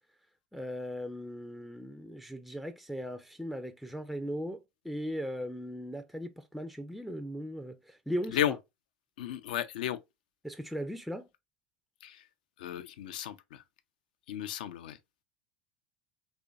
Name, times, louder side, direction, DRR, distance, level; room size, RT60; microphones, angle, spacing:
voice 1, 0.5-8.6 10.4-11.3, equal, ahead, 0.4 m, -38 dB
voice 2, 9.2-10.0 12.0-12.2 12.6-13.6 14.3-15.0, left 11 dB, 70° left, 0.4 m, -33 dB
3.1 x 2.5 x 2.2 m
figure-of-eight pair, 75°, 5 cm